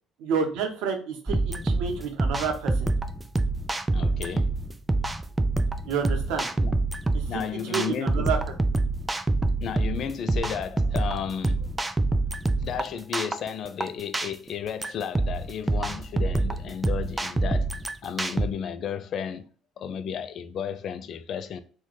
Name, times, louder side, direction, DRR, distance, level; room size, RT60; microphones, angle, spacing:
voice 1, 0.2-2.9 5.8-6.5 7.1-8.4, right 6 dB, 75° right, 0.7 m, -29 dB
sound 1, 1.3-18.5, right 2 dB, 15° right, 0.3 m, -26 dB
voice 2, 3.9-4.5 6.6-6.7 7.3-8.3 9.6-11.7 12.6-17.7 18.0-19.5 19.8-21.6, left 8 dB, 60° left, 0.3 m, -33 dB
3.0 x 2.2 x 4.0 m
supercardioid pair, 65°, 0 cm